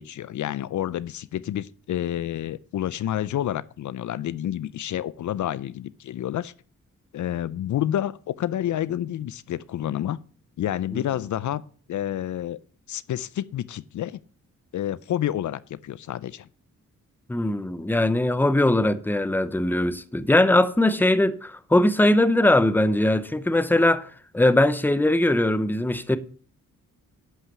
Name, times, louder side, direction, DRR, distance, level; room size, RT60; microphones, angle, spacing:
voice 1, 0.0-6.5 7.1-10.2 10.6-11.6 11.9-12.6 12.9-14.2 14.7-16.5, left 11 dB, 70° left, 0.5 m, -29 dB
voice 2, 17.3-24.1 24.3-26.2, left 1 dB, 5° left, 0.7 m, -21 dB
11.5 x 5.7 x 6.0 m
cardioid pair, 80°, 31 cm